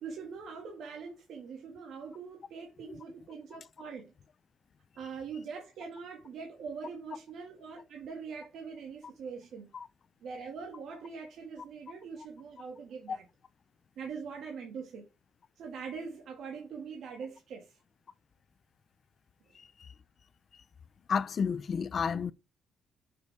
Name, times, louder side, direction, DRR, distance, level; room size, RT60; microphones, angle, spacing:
voice 1, 0.0-4.1 5.0-9.7 10.2-13.3 14.0-15.1 15.6-17.8, right 5 dB, 70° right, 2.0 m, -43 dB
voice 2, 19.5-19.9 21.1-22.3, left 6 dB, 50° left, 0.5 m, -32 dB
6.5 x 5.2 x 4.8 m
cardioid pair, 90°, 0 cm